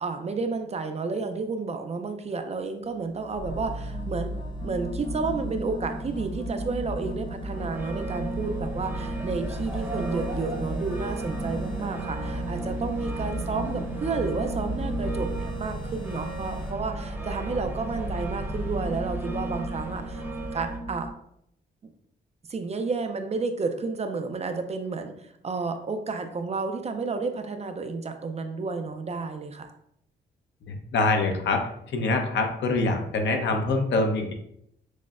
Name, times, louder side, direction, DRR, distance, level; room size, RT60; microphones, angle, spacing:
voice 1, 0.0-4.3 4.6-20.2 20.5-21.1 22.5-29.7, right 4 dB, 35° right, 7 dB, 0.4 m, -31 dB
sound 1, 2.9-16.7, equal, 25° left, 0.7 m, -43 dB
sound 2, 3.3-21.1, right 1 dB, 45° left, 1.1 m, -34 dB
sound 3, 7.5-20.8, right 3 dB, 10° right, 0.8 m, -39 dB
voice 2, 30.7-31.6 31.9-34.3, left 3 dB, 70° left, 4 dB, 0.7 m, -25 dB
6.2 x 2.1 x 2.4 m, 0.73 s
cardioid pair, 90°, 20 cm